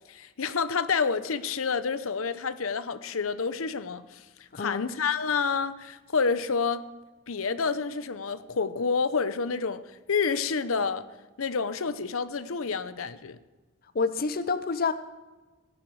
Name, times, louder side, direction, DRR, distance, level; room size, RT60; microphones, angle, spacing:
voice 1, 0.1-4.2 4.6-6.8 7.3-9.8 10.1-11.1 11.4-13.4, left 5 dB, 85° left, 0.8 m, -28 dB
voice 2, 4.5-4.9 13.9-14.9, left 4 dB, 45° left, 0.6 m, -28 dB
17.5 x 11.0 x 4.7 m
head